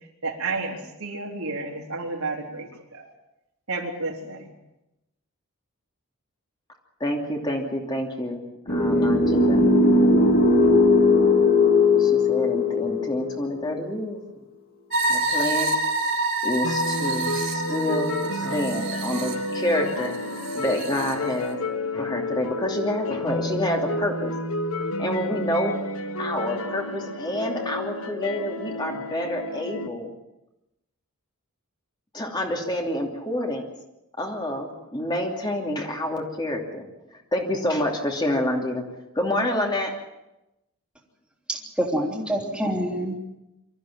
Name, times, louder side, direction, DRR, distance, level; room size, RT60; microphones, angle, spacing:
voice 1, 0.2-3.1 3.7-4.5, right 3 dB, 75° right, 0 dB, 3.9 m, -31 dB
voice 2, 7.0-8.4 8.7-9.6 11.9-14.2 15.1-15.8 16.4-20.1 20.5-21.6 21.9-24.3 25.0-25.8 26.2-30.1 32.1-33.7 34.2-38.8 39.1-39.9, left 1 dB, 20° left, 1 dB, 2.8 m, -28 dB
sound 1, 8.7-13.8, left 3 dB, 40° left, 3.1 m, -19 dB
sound 2, 14.9-21.1, right 2 dB, 55° right, 4.1 m, -28 dB
sound 3, 16.6-29.9, left 2 dB, 70° left, 1.5 m, -31 dB
voice 3, 41.5-43.2, equal, 5° right, -1 dB, 3.1 m, -26 dB
24.0 x 14.0 x 8.9 m, 0.93 s
head